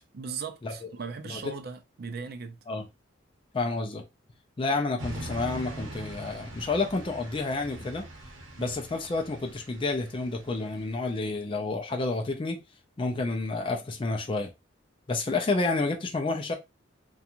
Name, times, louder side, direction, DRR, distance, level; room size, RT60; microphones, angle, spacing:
voice 1, 0.1-2.6 8.6-8.7, right 5 dB, 50° right, 0.4 m, -38 dB
voice 2, 3.5-4.0 4.6-8.1 8.6-12.6 13.0-14.5 15.1-16.5, left 3 dB, 25° left, 0.3 m, -29 dB
sound 1, 5.0-11.1, right 1 dB, 85° right, 0.8 m, -43 dB
2.5 x 2.3 x 2.8 m
head